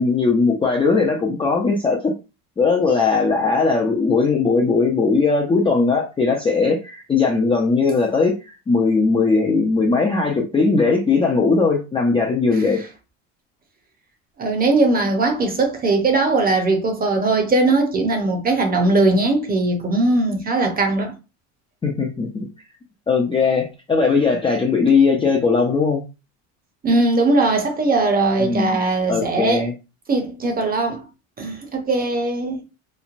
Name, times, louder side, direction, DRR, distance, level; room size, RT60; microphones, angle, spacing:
voice 1, 0.0-2.1 2.6-12.8 21.8-22.5 23.1-26.0 28.4-28.8 29.1-29.7, left 4 dB, 15° left, 0.4 m, -19 dB
voice 2, 14.4-21.1 26.8-29.7 30.1-31.0 31.4-32.6, right 2 dB, 20° right, 0.7 m, -19 dB
3.1 x 2.1 x 2.5 m
supercardioid pair, 105°, 40 cm